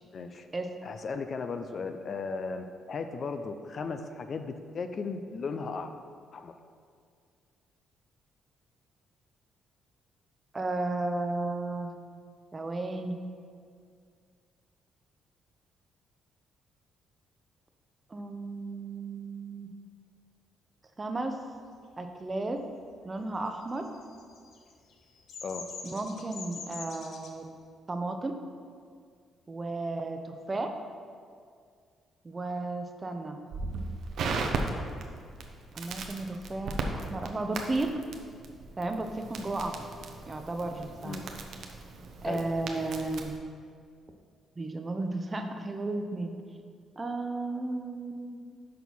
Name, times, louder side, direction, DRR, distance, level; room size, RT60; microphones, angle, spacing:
voice 1, 0.1-0.5 0.8-5.9 6.3-6.5 25.4-25.7 41.0-41.2 42.3-42.5, left 4 dB, 50° left, 8 dB, 0.4 m, -36 dB
voice 2, 10.5-11.9 12.5-13.1 18.1-19.7 21.0-21.4 22.0-22.6 23.0-23.9 25.8-27.5 27.9-28.3 29.5-30.7 32.2-33.4 35.7-37.9 38.8-39.8 40.3-41.2 42.2-43.3 44.6-46.3 47.0-48.5, right 2 dB, 25° right, 6 dB, 0.6 m, -33 dB
Bird vocalization bird call bird song, 23.6-27.3, left 4 dB, 70° left, 0.8 m, -44 dB
Crackle, 33.5-43.4, right 3 dB, 70° right, 0.7 m, -37 dB
6.1 x 4.5 x 5.4 m, 2.2 s
cardioid pair, 90°, 0 cm